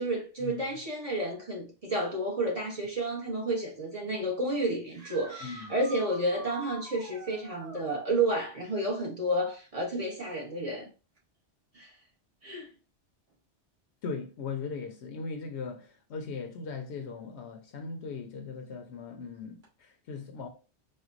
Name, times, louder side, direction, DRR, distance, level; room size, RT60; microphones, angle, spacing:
voice 1, 0.0-10.9 11.7-11.9 12.4-12.7, right 1 dB, 35° right, 0.9 m, -31 dB
sound 1, 4.9-7.9 11.2-11.3 13.3-13.4 19.6-19.7, right 1 dB, 55° right, 1.6 m, -45 dB
voice 2, 5.4-5.7 14.0-20.5, left 4 dB, 70° left, 0.9 m, -39 dB
4.4 x 2.2 x 2.4 m
omnidirectional pair, 1.2 m